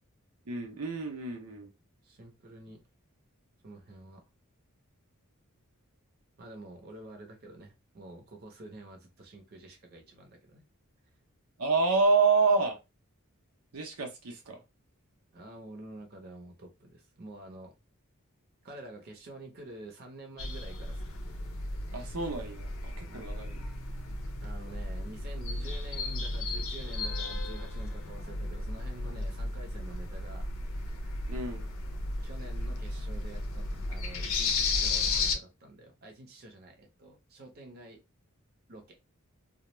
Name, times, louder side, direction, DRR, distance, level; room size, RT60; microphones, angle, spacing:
voice 1, 0.5-1.7 11.6-12.8 13.7-14.6 21.9-23.7 31.3-31.7, right 4 dB, 90° right, 0.7 m, -28 dB
voice 2, 2.0-2.8 3.6-4.2 6.4-10.6 15.3-17.7 18.6-21.1 23.1-23.4 24.4-30.5 32.2-38.0 38.7-39.0, right 1 dB, 45° right, 0.7 m, -48 dB
sound 1, 20.4-35.3, left 3 dB, 75° left, 0.6 m, -34 dB
2.3 x 2.1 x 2.9 m
head